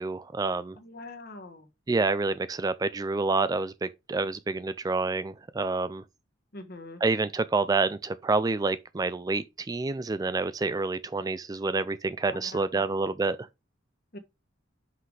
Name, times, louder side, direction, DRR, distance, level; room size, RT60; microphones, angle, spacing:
voice 1, 0.0-0.8 1.9-6.0 7.0-13.4, right 3 dB, 20° right, 0.3 m, -28 dB
voice 2, 0.8-1.7 6.5-7.0 12.3-12.8 14.1-14.2, left 2 dB, 50° left, 1.3 m, -43 dB
5.8 x 5.7 x 4.8 m
head